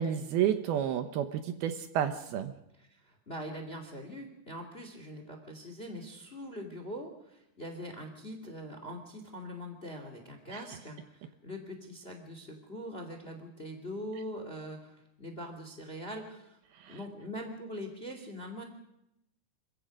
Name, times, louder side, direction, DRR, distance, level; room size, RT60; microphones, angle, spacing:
voice 1, 0.0-2.5 16.8-17.0, right 9 dB, 75° right, 8 dB, 2.5 m, -30 dB
voice 2, 2.8-16.6 16.9-18.6, equal, 20° left, 5 dB, 1.8 m, -42 dB
26.5 x 15.5 x 6.3 m, 0.86 s
omnidirectional pair, 5.0 m